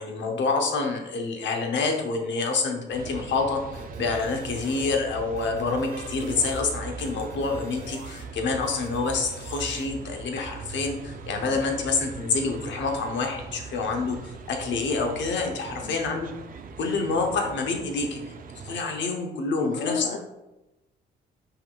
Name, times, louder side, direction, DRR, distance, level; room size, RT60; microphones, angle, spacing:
voice 1, 0.0-3.6 4.0-16.3 16.8-18.2 18.6-20.2, left 4 dB, 65° left, 3 dB, 0.9 m, -27 dB
sound 1, 2.9-18.8, right 5 dB, 45° right, 0.5 m, -40 dB
sound 2, 3.7-5.0 5.4-6.6 7.0-8.2 8.6-9.9, right 2 dB, 75° right, 1.2 m, -44 dB
voice 2, 19.6-20.2, left 6 dB, 50° left, 3 dB, 0.4 m, -32 dB
5.4 x 3.8 x 2.3 m, 0.98 s
cardioid pair, 90°, 20 cm